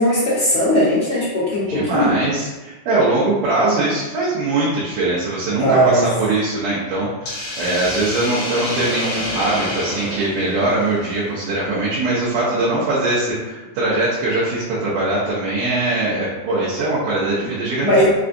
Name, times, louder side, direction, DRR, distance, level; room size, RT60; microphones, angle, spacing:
voice 1, 0.0-2.1 5.6-6.0 17.4-17.5 17.8-18.1, equal, 35° left, -12 dB, 1.0 m, -18 dB
voice 2, 1.7-18.1, right 2 dB, 80° right, -9 dB, 2.3 m, -21 dB
Hiss, 7.3-11.5, left 1 dB, 50° left, 1.7 m, -28 dB
5.4 x 2.3 x 2.5 m, 1.1 s
omnidirectional pair, 3.7 m